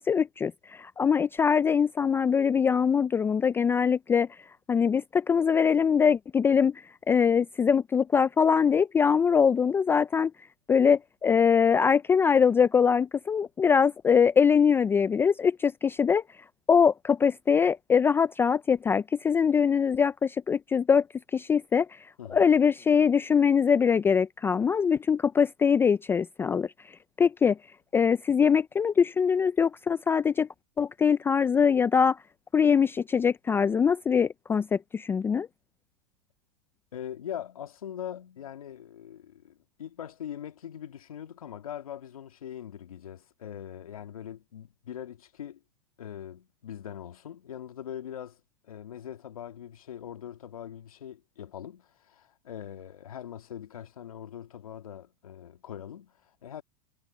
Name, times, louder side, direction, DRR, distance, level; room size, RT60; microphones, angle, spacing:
voice 1, 0.0-4.3 4.7-10.3 10.7-16.2 16.7-21.0 21.3-22.0 22.3-26.7 27.2-27.6 27.9-30.5 30.8-32.2 32.5-35.5, left 6 dB, 15° left, 0.4 m, -23 dB
voice 2, 36.9-45.6 46.0-56.6, left 10 dB, 90° left, 2.3 m, -42 dB
hypercardioid pair, 125°, 18 cm